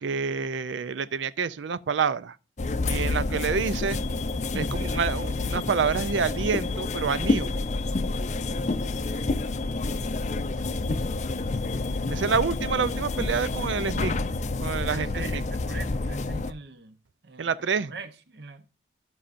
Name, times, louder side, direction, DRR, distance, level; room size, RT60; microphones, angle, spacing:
voice 1, 0.0-2.4 2.9-4.0 4.5-7.5 12.1-14.1 14.6-15.4 17.4-17.9, right 6 dB, 90° right, 0.5 m, -28 dB
sound 1, 2.6-16.5, left 3 dB, 40° left, 0.5 m, -29 dB
voice 2, 9.9-12.3 14.8-17.0 17.2-18.7, right 4 dB, 65° right, 0.9 m, -43 dB
16.5 x 5.6 x 2.6 m
head